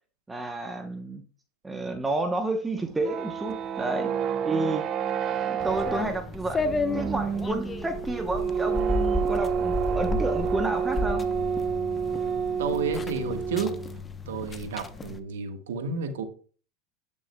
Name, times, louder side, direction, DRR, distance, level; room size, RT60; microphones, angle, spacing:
voice 1, 0.3-1.2 1.6-4.1 4.4-4.9 5.5-11.3, right 2 dB, 10° right, 0.9 m, -30 dB
sound 1, 2.8-14.0, right 7 dB, 40° right, 0.5 m, -29 dB
sound 2, 5.6-15.2, left 2 dB, 20° left, 0.8 m, -33 dB
voice 2, 12.6-13.7 14.3-16.2, right 5 dB, 85° right, 1.4 m, -31 dB
10.5 x 6.2 x 2.3 m
supercardioid pair, 110°, 0 cm